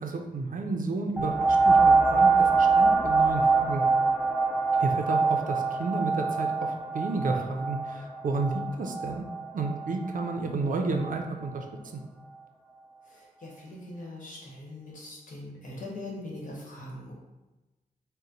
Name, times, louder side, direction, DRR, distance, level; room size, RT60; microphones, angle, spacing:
voice 1, 0.0-3.8 4.8-9.2 9.5-11.6 11.9-12.0, right 3 dB, 60° right, 3 dB, 0.5 m, -31 dB
sound 1, 1.2-10.4 11.1-11.2, right 4 dB, ahead, 0.4 m, -24 dB
voice 2, 13.1-17.1, left 1 dB, 55° left, -4 dB, 1.2 m, -41 dB
4.1 x 2.1 x 3.8 m, 1.1 s
wide cardioid pair, 105°, 16 cm